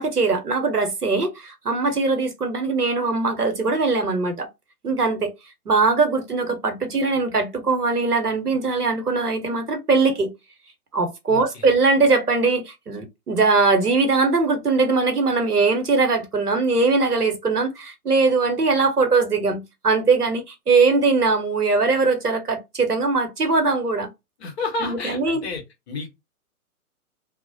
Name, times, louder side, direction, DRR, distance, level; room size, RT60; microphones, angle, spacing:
voice 1, 0.0-4.5 4.8-5.3 5.7-10.3 10.9-24.1 24.8-25.5, right 3 dB, 85° right, 0.9 m, -21 dB
voice 2, 11.3-11.7 24.4-25.6 25.9-26.1, left 3 dB, 45° left, 1.1 m, -30 dB
2.4 x 2.0 x 2.6 m
figure-of-eight pair, 120°, 45 cm